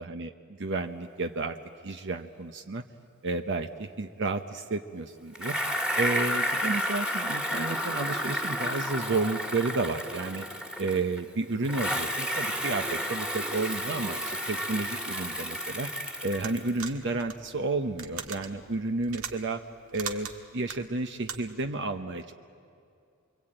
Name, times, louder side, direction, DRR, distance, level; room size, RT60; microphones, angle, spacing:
voice 1, 0.0-1.6 1.8-2.8 3.2-5.6 6.0-10.4 10.8-15.9 16.2-19.6 19.9-22.3, right 3 dB, 55° right, 7 dB, 0.9 m, -31 dB
Bicycle, 5.3-11.2 11.6-16.9, equal, 5° right, 1.9 m, -31 dB
sound 1, 16.3-21.7, right 7 dB, 70° right, 1.8 m, -40 dB
28.5 x 23.0 x 8.9 m, 2.4 s
head